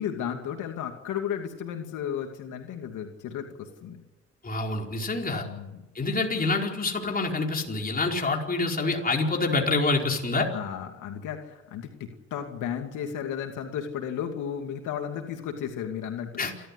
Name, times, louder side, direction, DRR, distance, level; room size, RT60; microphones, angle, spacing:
voice 1, 0.0-4.0 5.3-5.9 10.5-16.7, left 8 dB, 85° left, 4 dB, 2.6 m, -34 dB
voice 2, 4.4-5.4 5.9-10.5 16.4-16.5, left 3 dB, 30° left, 1 dB, 4.8 m, -26 dB
28.5 x 13.0 x 10.0 m, 1.0 s
cardioid pair, 90°, 30 cm